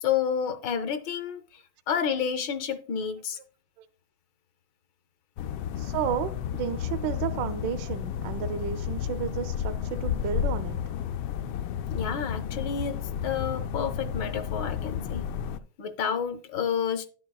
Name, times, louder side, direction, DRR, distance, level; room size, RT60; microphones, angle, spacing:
voice 1, 0.0-1.4 1.9-3.4 11.9-15.2 15.8-17.1, left 7 dB, 70° left, 1.3 m, -30 dB
sound 1, 5.4-15.6, left 9 dB, 90° left, 1.4 m, -32 dB
voice 2, 5.8-10.8, right 9 dB, 75° right, 1.2 m, -32 dB
11.0 x 8.6 x 2.3 m
omnidirectional pair, 2.2 m